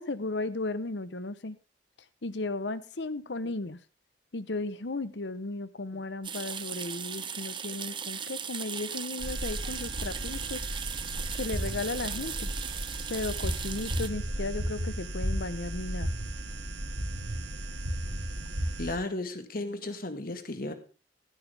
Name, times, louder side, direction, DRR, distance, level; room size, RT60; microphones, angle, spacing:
voice 1, 0.0-1.6 2.2-3.8 4.3-10.6 11.3-12.5 13.1-16.1, left 2 dB, 80° left, 15 dB, 1.0 m, -35 dB
sound 1, 6.2-14.1, right 7 dB, 30° right, 0.8 m, -38 dB
sound 2, 9.2-19.0, right 1 dB, 80° right, 2.4 m, -34 dB
voice 2, 18.8-20.7, left 2 dB, 55° left, 9 dB, 1.8 m, -34 dB
16.0 x 12.5 x 3.5 m, 0.34 s
head